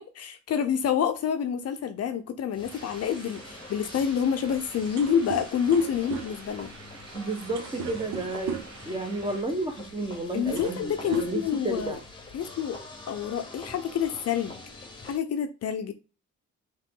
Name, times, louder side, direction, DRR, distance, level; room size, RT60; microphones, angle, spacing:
voice 1, 0.2-6.7 10.3-12.0 12.3-12.8 13.1-14.6 15.0-15.9, left 8 dB, 55° left, 0.5 m, -28 dB
sound 1, 2.5-15.2, left 2 dB, 15° left, 1.2 m, -45 dB
sound 2, 2.6-9.4, right 3 dB, 60° right, 1.3 m, -48 dB
sound 3, 4.8-8.9 9.9-10.0 10.4-10.8 11.1-12.0, right 9 dB, 85° right, 0.8 m, -38 dB
voice 2, 7.1-11.4 11.6-12.0, right 2 dB, 15° right, 1.2 m, -31 dB
3.7 x 3.0 x 3.7 m
cardioid pair, 90°, 30 cm